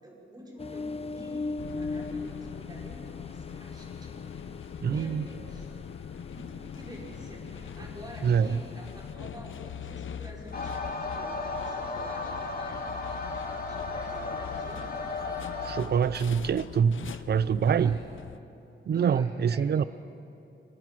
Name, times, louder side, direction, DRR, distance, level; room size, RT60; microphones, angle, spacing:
voice 1, 0.0-4.2 4.8-5.7 6.3-13.3 13.7-14.9 17.6-18.1 18.9-19.9, equal, 20° right, -3 dB, 5.5 m, -48 dB
Ocean, 0.6-9.2, left 3 dB, 30° left, 0.8 m, -40 dB
sound 1, 1.6-18.4, left 8 dB, 70° left, 0.7 m, -42 dB
voice 2, 4.8-5.3 8.2-8.6 15.6-18.0 18.9-19.8, right 7 dB, 55° right, 17 dB, 0.5 m, -25 dB
sound 2, 10.5-15.8, left 3 dB, 45° left, 2.5 m, -35 dB
26.0 x 23.5 x 6.2 m, 2.9 s
wide cardioid pair, 125°, 21 cm